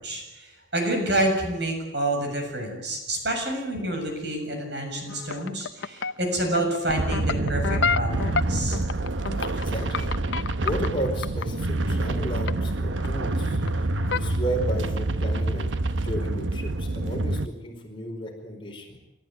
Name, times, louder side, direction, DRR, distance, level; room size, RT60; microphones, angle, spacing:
voice 1, 0.0-8.8, right 1 dB, 65° right, 3 dB, 7.2 m, -28 dB
sound 1, 5.1-11.5 12.5-12.7 13.0-13.7 14.0-14.3 14.6-14.8, left 5 dB, 75° left, 0.8 m, -29 dB
sound 2, 6.9-17.5, right 2 dB, 85° right, 1.0 m, -27 dB
voice 2, 9.3-15.8 16.0-19.0, equal, 25° left, 1 dB, 4.8 m, -34 dB
28.5 x 14.0 x 9.4 m, 0.96 s
head